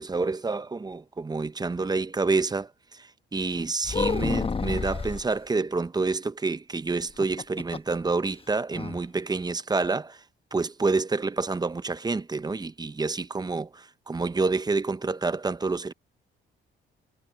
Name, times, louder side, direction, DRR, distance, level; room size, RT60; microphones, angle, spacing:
voice 1, 0.0-10.2 10.5-15.9, right 3 dB, 20° right, 0.7 m, -28 dB
sound 1, 3.8-5.3 7.0-8.0 8.3-8.4 8.7-9.0, left 5 dB, 30° left, 1.0 m, -29 dB
cardioid pair, 90°, 20 cm